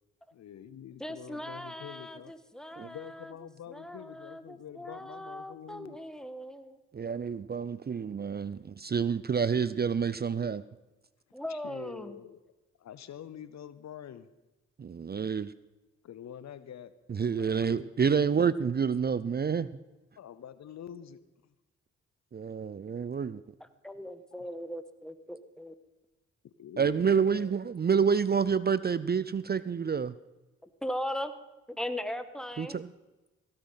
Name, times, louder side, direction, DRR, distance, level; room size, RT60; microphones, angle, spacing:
voice 1, 0.3-2.3 2.8-6.0 11.5-12.4 12.8-14.3 16.0-17.9 20.2-21.5 26.4-27.5, left 9 dB, 65° left, 15 dB, 0.8 m, -46 dB
voice 2, 1.0-3.3 3.7-6.8 11.3-12.2 23.6-25.7 30.6-31.3 31.7-32.8, equal, ahead, 11 dB, 1.4 m, -39 dB
voice 3, 6.9-10.6 14.8-15.5 17.1-19.7 22.3-23.4 26.8-30.1 32.6-32.9, right 6 dB, 35° right, 17 dB, 0.5 m, -28 dB
16.0 x 8.9 x 5.6 m, 1.1 s
supercardioid pair, 40°, 30 cm